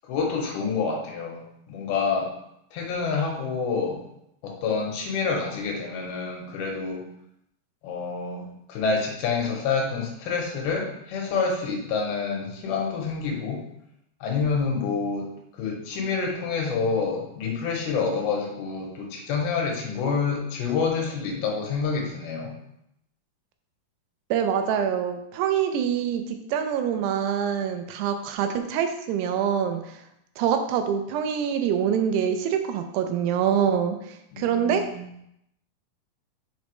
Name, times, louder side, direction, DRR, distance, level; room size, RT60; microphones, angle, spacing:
voice 1, 0.0-1.4 1.7-2.3 2.7-4.0 4.4-7.0 7.8-13.6 14.2-22.5 34.3-35.0, left 5 dB, 80° left, 0 dB, 2.7 m, -28 dB
voice 2, 24.3-30.0 30.4-34.9, right 8 dB, 85° right, 7 dB, 2.7 m, -25 dB
6.0 x 5.2 x 3.1 m, 0.78 s
omnidirectional pair, 4.6 m